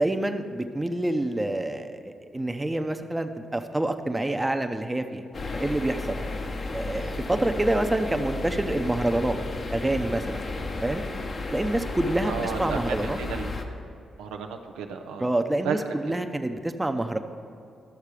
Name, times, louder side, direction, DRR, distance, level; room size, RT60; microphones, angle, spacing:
voice 1, 0.0-5.2 5.5-6.2 6.7-9.4 9.7-10.4 10.8-11.0 11.5-13.2 15.2-17.2, right 1 dB, 15° right, 7 dB, 0.7 m, -27 dB
sound 1, 5.3-13.6, left 2 dB, 50° left, 0.9 m, -33 dB
voice 2, 12.3-13.5 14.2-15.3 15.6-15.8, right 6 dB, 85° right, 5 dB, 0.5 m, -32 dB
12.0 x 6.5 x 4.9 m, 2.5 s
supercardioid pair, 45°, 0 cm